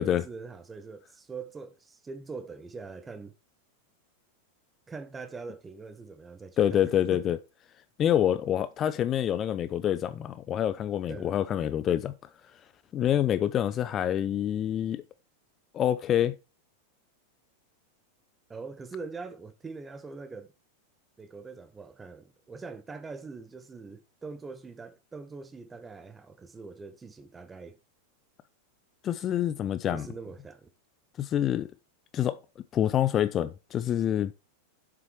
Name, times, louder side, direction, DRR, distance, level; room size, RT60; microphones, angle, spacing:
voice 1, 0.0-3.3 4.9-7.3 11.1-11.4 18.5-20.5 21.2-27.8 29.9-30.7, right 4 dB, 15° right, 0.9 m, -43 dB
voice 2, 6.6-7.4 8.0-12.1 12.9-15.0 15.7-16.3 29.0-30.1 31.2-31.7 32.1-32.4 32.7-34.3, left 10 dB, 30° left, 0.5 m, -26 dB
7.4 x 6.1 x 4.6 m
figure-of-eight pair, 90°, 0 cm